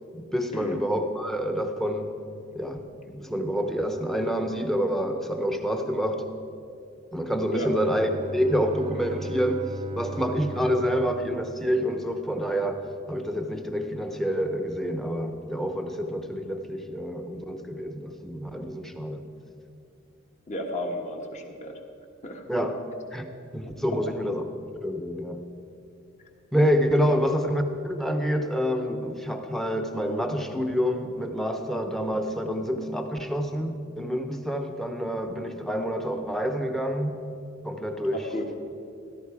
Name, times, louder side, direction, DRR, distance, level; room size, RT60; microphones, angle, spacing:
voice 1, 0.1-2.2 2.5-6.3 7.1-12.8 13.1-19.2 22.5-22.8 23.1-24.5 24.8-25.4 26.5-37.2 37.6-38.2, equal, ahead, 5 dB, 0.9 m, -27 dB
Bowed string instrument, 7.6-12.3, right 2 dB, 25° right, 0.4 m, -39 dB
voice 2, 20.5-21.8 22.2-22.4 23.8-24.0 27.0-27.2 38.1-38.5, equal, 35° left, 3 dB, 1.5 m, -33 dB
16.0 x 14.0 x 4.9 m, 2.6 s
head